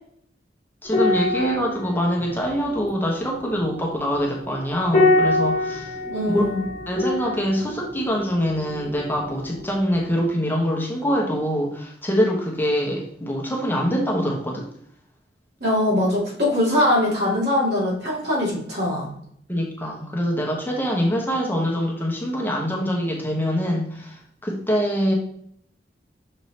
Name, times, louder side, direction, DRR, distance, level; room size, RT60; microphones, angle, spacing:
voice 1, 0.8-5.9 6.3-6.4 6.9-14.7 19.5-25.1, equal, 10° left, -2 dB, 1.1 m, -24 dB
sound 1, 0.9-9.6 9.9-10.1, left 2 dB, 45° left, 1.2 m, -25 dB
voice 2, 6.0-6.6 15.6-19.1, left 1 dB, 65° right, -4 dB, 2.5 m, -22 dB
6.2 x 3.8 x 4.1 m, 0.67 s
head